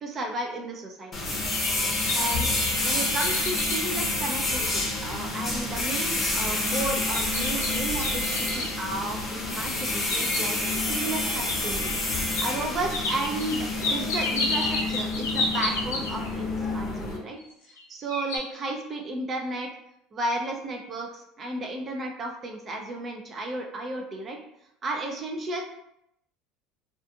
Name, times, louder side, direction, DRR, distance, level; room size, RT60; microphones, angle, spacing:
voice 1, 0.0-1.1 2.1-2.5 2.8-10.6 10.8-17.4 17.9-19.7 20.1-24.4 24.8-25.6, right 2 dB, 35° right, 2 dB, 0.4 m, -33 dB
sound 1, 1.1-17.2, left 2 dB, 25° left, 0.7 m, -28 dB
sound 2, 1.2-4.8 5.3-5.4 5.9-6.3 7.1-8.8 9.8-10.8 11.5-11.6 12.3-12.5 12.9-16.4 17.4-17.8 18.1-18.4, left 2 dB, 90° left, 0.6 m, -31 dB
2.4 x 2.3 x 2.6 m, 0.76 s
supercardioid pair, 100°, 0 cm